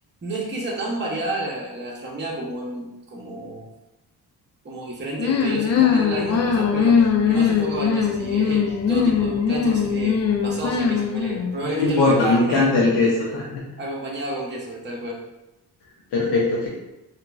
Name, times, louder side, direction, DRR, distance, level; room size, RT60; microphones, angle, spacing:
voice 1, 0.2-3.7 4.6-12.7 13.8-15.2, right 2 dB, 25° right, -3 dB, 0.7 m, -30 dB
sound 1, 5.2-11.6, left 7 dB, 40° left, 0.4 m, -21 dB
voice 2, 11.6-13.6 16.1-16.7, left 3 dB, 80° left, -6 dB, 0.7 m, -20 dB
2.8 x 2.5 x 2.3 m, 0.96 s
cardioid pair, 60°, 40 cm